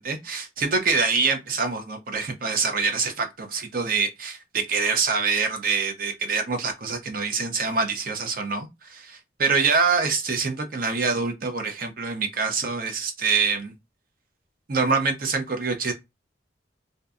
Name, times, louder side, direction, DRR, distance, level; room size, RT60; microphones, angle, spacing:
voice 1, 0.0-13.7 14.7-15.9, right 4 dB, 50° right, 0.5 m, -25 dB
2.6 x 2.1 x 2.4 m
head